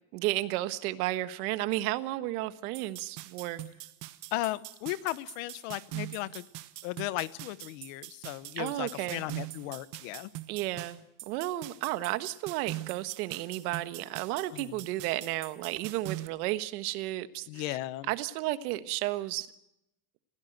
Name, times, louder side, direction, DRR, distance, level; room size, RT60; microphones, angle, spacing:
voice 1, 0.1-3.6 8.6-9.2 10.5-17.8 18.1-19.5, right 16 dB, 75° right, 12 dB, 1.5 m, -33 dB
sound 1, 2.7-16.3, right 17 dB, 40° right, 1.1 m, -43 dB
voice 2, 4.3-6.5 6.8-10.3 14.5-14.9 17.5-18.1, left 17 dB, 55° left, 17 dB, 1.0 m, -36 dB
27.0 x 16.5 x 7.9 m, 0.83 s
cardioid pair, 170°, 45 cm